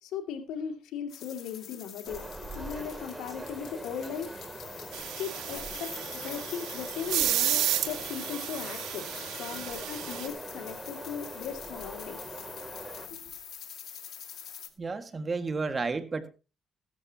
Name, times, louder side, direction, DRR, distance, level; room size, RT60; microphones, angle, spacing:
voice 1, 0.0-2.2 2.5-4.4 5.1-12.2 13.1-13.2, left 8 dB, 90° left, 5 dB, 2.3 m, -38 dB
sound 1, 1.1-14.7, left 9 dB, 70° left, 2.1 m, -45 dB
sound 2, 2.1-13.1, right 2 dB, 15° right, 2.8 m, -43 dB
sound 3, 4.9-10.3, right 12 dB, 90° right, 2.1 m, -32 dB
voice 2, 14.8-16.3, right 4 dB, 35° right, 8 dB, 1.8 m, -32 dB
15.0 x 13.0 x 2.9 m, 0.32 s
cardioid pair, 90°, 0 cm